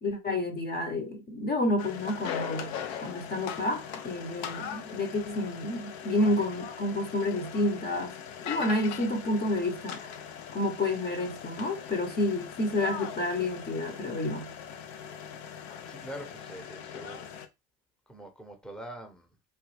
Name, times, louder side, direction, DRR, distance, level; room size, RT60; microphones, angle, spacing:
voice 1, 0.0-2.7 3.0-8.2 8.4-10.2 10.5-14.5, left 1 dB, 30° left, 0.9 m, -30 dB
sound 1, 1.8-17.5, left 8 dB, 85° left, 0.6 m, -40 dB
voice 2, 15.8-17.3 18.1-19.3, right 1 dB, ahead, 0.8 m, -44 dB
3.1 x 2.2 x 3.2 m
supercardioid pair, 80°, 31 cm